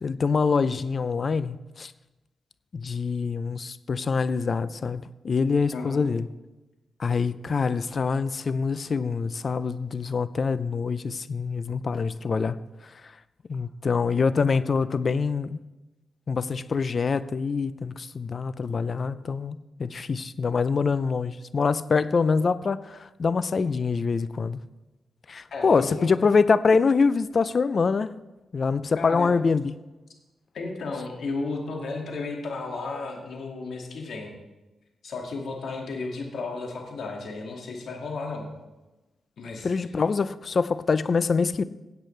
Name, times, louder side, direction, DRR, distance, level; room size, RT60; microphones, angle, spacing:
voice 1, 0.0-1.9 2.7-6.3 7.0-12.6 13.5-15.6 16.3-24.6 25.3-28.1 28.5-29.7 39.6-41.6, left 5 dB, 50° left, 15 dB, 0.5 m, -25 dB
voice 2, 5.7-6.0 25.5-26.1 28.9-29.3 30.5-34.3 35.0-38.5 39.4-39.7, left 3 dB, 75° left, 1 dB, 2.2 m, -33 dB
17.0 x 8.2 x 3.3 m, 1.1 s
cardioid pair, 60°, 0 cm